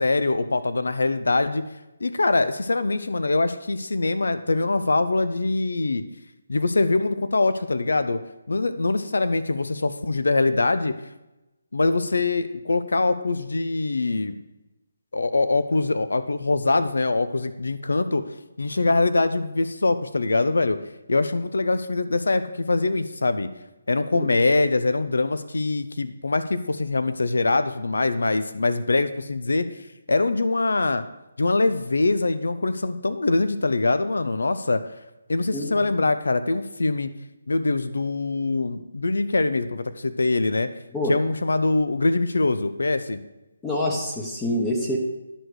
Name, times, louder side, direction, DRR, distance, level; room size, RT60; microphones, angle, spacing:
voice 1, 0.0-1.6 2.0-6.0 6.5-8.2 8.5-11.0 11.7-14.4 15.1-18.2 18.6-20.8 21.1-23.5 23.9-29.6 30.1-31.0 31.4-34.8 35.3-37.1 37.5-40.7 41.1-43.2, left 3 dB, 85° left, 11 dB, 0.6 m, -23 dB
voice 2, 35.5-35.9 40.9-41.2 43.6-45.0, left 1 dB, 10° left, -2 dB, 0.9 m, -26 dB
10.0 x 6.4 x 4.8 m, 0.99 s
hypercardioid pair, 165°, 0 cm